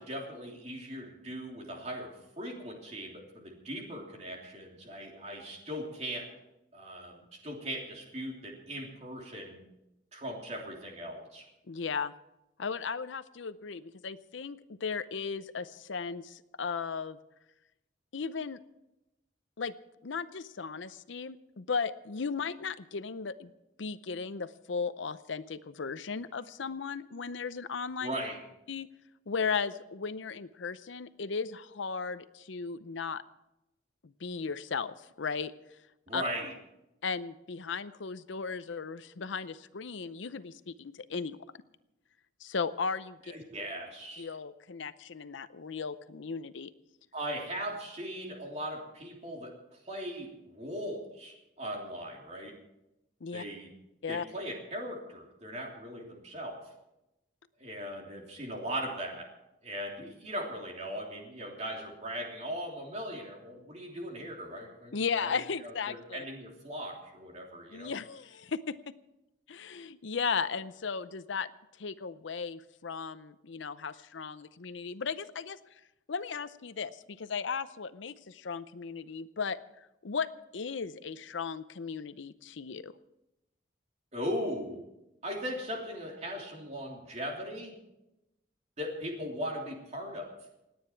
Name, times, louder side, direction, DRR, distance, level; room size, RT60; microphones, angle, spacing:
voice 1, 0.0-6.3 6.7-9.6 10.1-11.4 28.0-28.4 36.1-36.5 43.3-44.3 47.1-49.5 49.8-52.5 53.3-53.7 54.1-56.6 57.6-59.2 59.6-67.9 84.1-84.8 85.2-87.7 88.8-90.3, equal, 35° right, 0 dB, 3.2 m, -39 dB
voice 2, 11.7-12.1 12.6-17.2 18.1-18.6 19.6-19.7 20.0-23.5 23.8-28.1 28.7-28.9 29.3-33.2 34.0-35.5 36.1-36.2 37.0-41.4 42.4-43.2 44.2-46.7 53.2-53.4 54.0-54.2 64.9-66.2 67.7-68.7 69.5-71.5 71.8-75.6 76.1-79.6 80.0-80.3 80.5-82.9, left 5 dB, 75° left, 14 dB, 0.6 m, -36 dB
28.0 x 9.6 x 4.6 m, 0.93 s
head